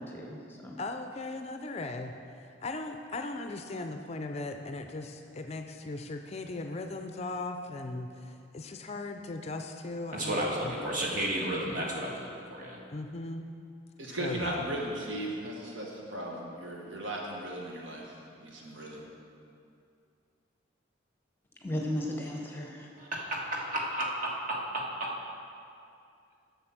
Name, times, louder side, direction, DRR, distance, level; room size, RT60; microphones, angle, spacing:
voice 1, 0.0-0.7 21.6-22.9, left 1 dB, 10° left, -1 dB, 0.9 m, -35 dB
voice 2, 0.8-2.1 2.6-10.7 12.9-13.5 14.2-14.6, left 2 dB, 35° left, 6 dB, 0.4 m, -38 dB
voice 3, 10.1-12.8 23.0-25.2, right 1 dB, 45° right, -2 dB, 1.5 m, -33 dB
voice 4, 14.0-18.1 18.4-19.0, right 1 dB, 75° right, -2 dB, 1.6 m, -37 dB
7.7 x 7.0 x 5.9 m, 2.5 s
head